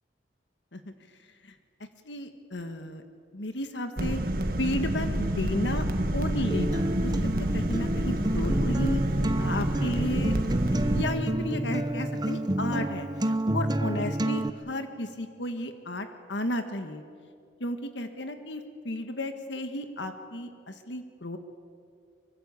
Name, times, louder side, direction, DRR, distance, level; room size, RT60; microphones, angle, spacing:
voice 1, 2.0-3.0 3.3-4.2 4.6-5.8 6.1-9.0 9.4-10.4 10.7-17.0 17.6-21.4, left 1 dB, 70° left, 7 dB, 1.7 m, -33 dB
sound 1, 4.0-11.0, right 1 dB, 50° right, 1.7 m, -28 dB
Acoustic guitar, 6.5-14.5, right 1 dB, 20° right, 0.9 m, -29 dB
24.5 x 24.0 x 8.4 m, 2.2 s
head